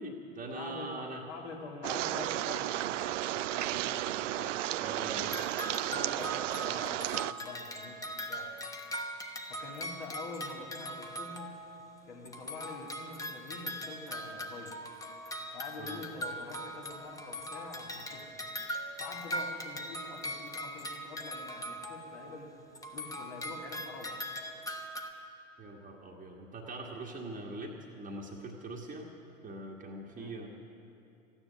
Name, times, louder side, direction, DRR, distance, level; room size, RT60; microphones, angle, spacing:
voice 1, 0.0-1.2 4.8-5.3 15.8-16.0 25.6-29.1 29.4-30.5, right 2 dB, 20° right, -1 dB, 1.5 m, -42 dB
voice 2, 0.5-4.6 4.9-5.3 5.8-8.5 9.5-11.5 12.0-14.8 15.5-18.4 19.0-22.5 22.9-24.3 30.1-30.5, left 3 dB, 60° left, -1 dB, 3.0 m, -46 dB
sound 1, 1.8-7.3, right 14 dB, 65° right, 0.5 m, -33 dB
sound 2, 5.2-12.0 12.3-22.5 22.8-25.1, equal, 10° left, 1.1 m, -41 dB
14.5 x 9.8 x 9.5 m, 2.7 s
figure-of-eight pair, 85°, 40 cm